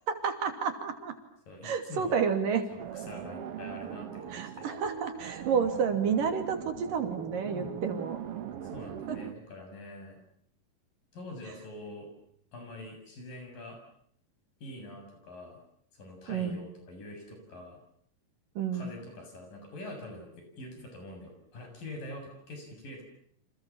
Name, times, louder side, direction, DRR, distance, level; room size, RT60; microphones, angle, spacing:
voice 1, 0.1-1.1 1.6-2.6 4.3-8.2 9.1-9.2 16.3-16.6 18.6-18.9, right 6 dB, 70° right, 7 dB, 4.4 m, -30 dB
voice 2, 1.5-2.2 2.7-4.7 8.6-10.2 11.1-12.1 12.5-13.8 14.6-15.6 15.9-17.8 18.7-23.0, left 1 dB, 70° left, 4 dB, 9.0 m, -45 dB
sound 1, 2.8-9.3, right 9 dB, 55° right, 1.9 m, -41 dB
29.5 x 27.0 x 7.3 m, 0.66 s
omnidirectional pair, 4.0 m